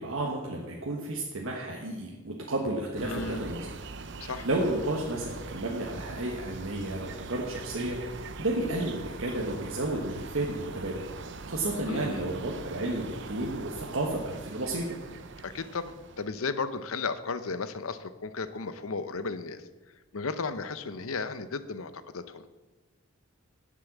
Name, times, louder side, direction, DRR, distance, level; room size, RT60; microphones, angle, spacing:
voice 1, 0.0-3.7 4.2-8.0 8.4-11.0 11.5-15.0, right 1 dB, 75° right, -2 dB, 1.4 m, -32 dB
voice 2, 3.0-3.4 4.2-4.5 11.9-12.2 15.4-19.6 20.1-22.5, left 4 dB, 80° left, 12 dB, 0.7 m, -34 dB
sound 1, 3.0-16.3, right 3 dB, 55° right, 0.7 m, -42 dB
10.0 x 7.6 x 7.3 m, 1.2 s
head